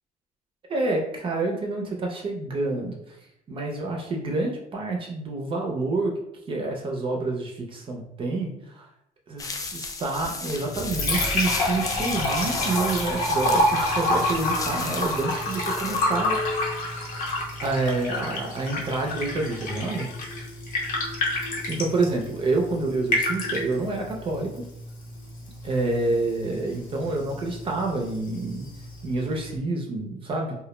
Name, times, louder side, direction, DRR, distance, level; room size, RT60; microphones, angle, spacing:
voice 1, 0.7-3.2 3.5-6.1 6.5-8.9 9.3-16.4 16.9-17.3 17.6-20.1 21.7-24.5 25.6-28.7 29.0-30.6, right 2 dB, 35° right, 0 dB, 0.5 m, -28 dB
sound 1, 9.4-16.0, left 3 dB, 25° left, 0.3 m, -35 dB
Liquid, 10.6-29.6, left 1 dB, 60° left, 0.7 m, -29 dB
2.2 x 2.0 x 3.0 m, 0.80 s
cardioid pair, 110°, 15 cm